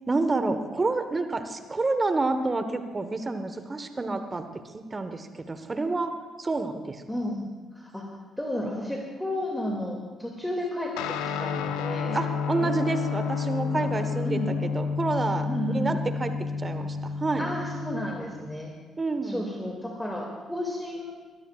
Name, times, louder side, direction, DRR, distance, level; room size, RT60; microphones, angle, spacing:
voice 1, 0.1-4.4 4.7-6.1 6.4-7.0 12.1-15.5 15.7-17.5 19.0-19.5, right 3 dB, 30° right, 9 dB, 1.3 m, -29 dB
voice 2, 7.1-7.5 7.7-8.1 8.4-12.3 12.6-12.7 14.2-14.5 15.4-15.9 17.4-18.7 19.2-21.1, left 1 dB, 5° left, -1 dB, 2.5 m, -32 dB
Guitar, 11.0-18.7, left 5 dB, 75° left, 0.9 m, -30 dB
22.5 x 17.0 x 2.5 m, 1.4 s
hypercardioid pair, 45°, 0 cm